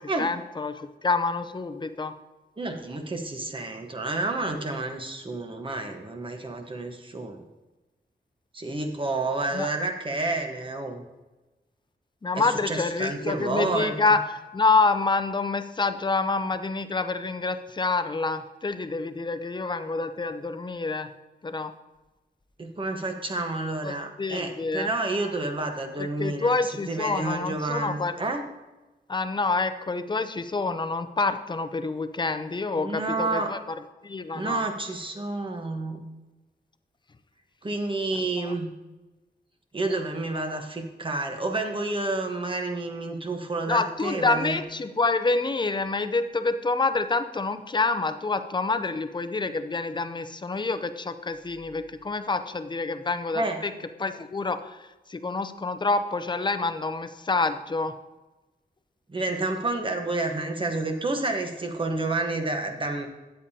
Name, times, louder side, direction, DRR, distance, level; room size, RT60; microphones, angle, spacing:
voice 1, 0.0-2.1 9.5-9.7 12.2-14.2 14.5-21.1 21.4-21.7 23.8-24.9 26.0-28.1 29.1-33.6 34.0-34.6 38.4-38.5 43.7-53.7 54.0-54.8 55.1-57.9, left 3 dB, 25° left, 10 dB, 0.6 m, -27 dB
voice 2, 2.6-7.4 8.5-11.0 12.4-13.9 22.6-28.4 32.7-33.5 34.3-36.0 37.6-38.7 39.7-44.6 53.3-53.6 59.1-63.1, right 2 dB, 30° right, 4 dB, 1.1 m, -29 dB
13.5 x 8.9 x 2.8 m, 1.1 s
wide cardioid pair, 160°, 17 cm